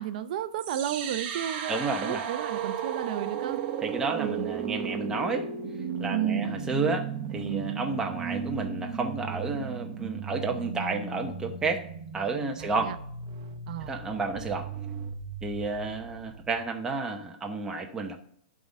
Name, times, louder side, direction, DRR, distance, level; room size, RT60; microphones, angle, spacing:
voice 1, 0.0-3.6 4.2-4.5 6.1-6.5 12.6-13.0 13.7-13.9, right 10 dB, 55° right, 0.6 m, -32 dB
sound 1, 0.6-16.6, right 7 dB, 40° right, 1.0 m, -35 dB
voice 2, 1.7-2.3 3.8-5.5 6.0-7.1 7.3-11.8 12.1-12.9 13.8-14.7 15.4-18.2, right 3 dB, 10° right, 0.9 m, -31 dB
11.0 x 3.7 x 5.2 m
hypercardioid pair, 140°, 5 cm